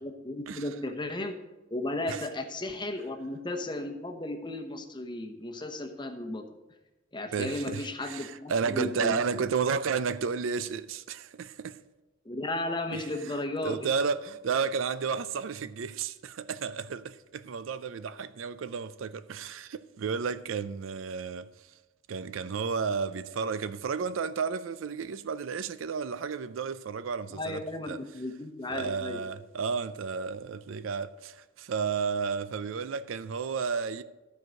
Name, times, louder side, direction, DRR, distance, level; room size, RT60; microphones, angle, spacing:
voice 1, 0.0-1.4 1.7-6.5 7.1-9.2 12.2-13.9 27.3-29.2, left 2 dB, 25° left, 0.9 m, -34 dB
voice 2, 7.3-11.8 12.9-13.0 13.6-21.5 22.1-28.0 28.7-34.0, right 5 dB, 75° right, 0.4 m, -32 dB
13.5 x 4.7 x 6.3 m
head